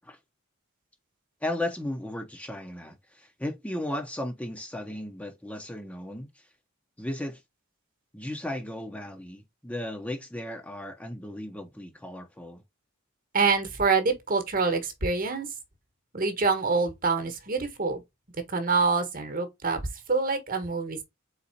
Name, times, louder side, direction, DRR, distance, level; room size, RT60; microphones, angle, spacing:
voice 1, 1.4-6.5 7.0-7.4 8.1-12.6, left 1 dB, 5° left, 0.7 m, -35 dB
voice 2, 13.3-15.5 16.1-18.0 18.5-19.8 20.1-21.0, right 4 dB, 40° right, 1.2 m, -26 dB
4.1 x 4.0 x 2.7 m
head